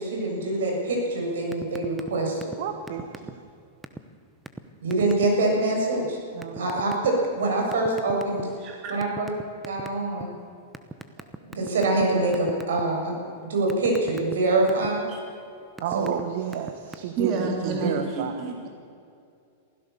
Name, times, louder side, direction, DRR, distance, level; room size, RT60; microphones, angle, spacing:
voice 1, 0.0-2.5 4.8-6.2 6.5-8.5 8.9-9.3 9.6-10.3 11.4-13.1 13.4-15.1, right 2 dB, 85° right, 0 dB, 7.3 m, -25 dB
sound 1, 1.5-2.1 2.4-2.6 2.9-3.5 3.8-4.0 4.5-4.6 4.9-5.3 6.4-7.1 7.7-8.6 9.0-10.2 10.7-12.0 12.3-12.8 13.2-14.9 15.5-16.2 16.5-17.0, right 3 dB, 5° right, 0.9 m, -37 dB
voice 2, 2.6-3.4 6.3-6.7 15.8-18.5, right 9 dB, 55° right, 7 dB, 1.4 m, -31 dB
voice 3, 17.2-18.7, right 3 dB, 35° right, 1 dB, 3.3 m, -29 dB
23.5 x 16.0 x 7.0 m, 2.4 s
supercardioid pair, 155°, 0 cm